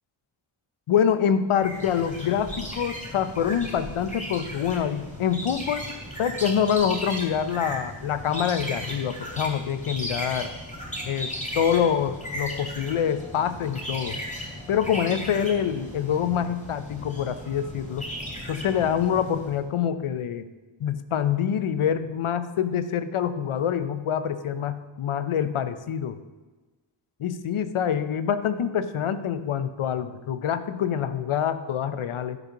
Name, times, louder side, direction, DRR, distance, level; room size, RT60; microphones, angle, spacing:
voice 1, 0.9-5.9 6.2-10.5 11.1-14.2 14.7-18.1 18.5-20.5 20.8-26.2 27.2-32.4, left 8 dB, 85° left, 11 dB, 0.8 m, -26 dB
sound 1, 1.6-19.6, equal, 15° left, 3.0 m, -36 dB
13.0 x 5.2 x 5.8 m, 1.2 s
cardioid pair, 60°, 49 cm